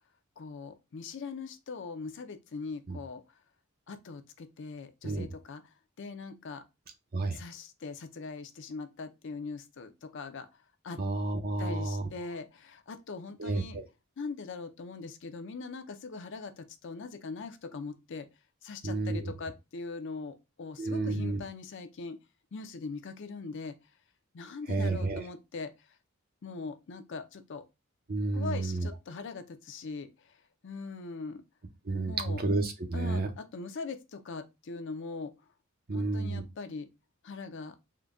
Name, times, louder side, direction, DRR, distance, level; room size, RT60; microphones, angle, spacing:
voice 1, 0.4-3.2 3.9-5.6 6.0-6.6 7.3-10.5 10.8-11.0 11.6-13.8 14.2-18.3 18.6-22.2 22.5-23.8 24.3-25.7 26.4-27.6 28.3-30.1 30.6-31.4 32.1-32.4 32.9-35.3 35.9-36.9 37.2-37.7, left 4 dB, 60° left, 0.5 m, -41 dB
voice 2, 11.0-12.1 13.4-13.8 18.8-19.3 20.8-21.4 24.7-25.3 28.1-28.9 31.9-33.3 35.9-36.4, right 2 dB, 45° right, 0.6 m, -31 dB
3.8 x 2.2 x 3.4 m
head